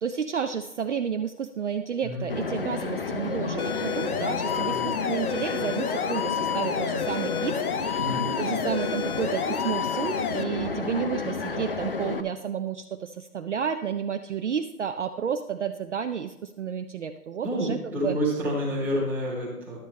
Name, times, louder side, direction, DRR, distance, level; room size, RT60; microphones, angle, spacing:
voice 1, 0.0-18.2, right 7 dB, 50° right, 7 dB, 0.5 m, -31 dB
voice 2, 2.0-2.3 4.6-4.9 8.0-8.4 17.4-19.8, equal, 5° right, -6 dB, 1.0 m, -29 dB
sound 1, 2.3-12.2, left 4 dB, 40° left, 0.4 m, -31 dB
sound 2, 3.6-10.4, left 8 dB, 65° left, 0.8 m, -31 dB
11.5 x 8.0 x 3.1 m, 0.92 s
hypercardioid pair, 155°, 47 cm